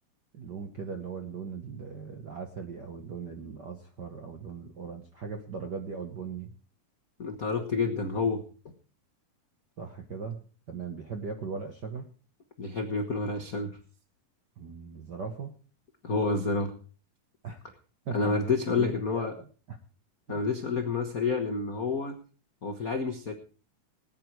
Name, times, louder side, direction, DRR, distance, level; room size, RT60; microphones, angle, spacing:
voice 1, 0.3-6.5 9.8-12.1 14.6-15.5 17.4-17.6 18.0-18.4 18.8-19.8, right 5 dB, 60° right, 5 dB, 1.1 m, -39 dB
voice 2, 7.2-8.4 12.6-13.7 16.0-16.7 18.1-19.3 20.3-22.1 22.6-23.3, left 4 dB, 80° left, 4 dB, 0.7 m, -29 dB
19.5 x 9.6 x 4.7 m, 0.39 s
omnidirectional pair, 3.7 m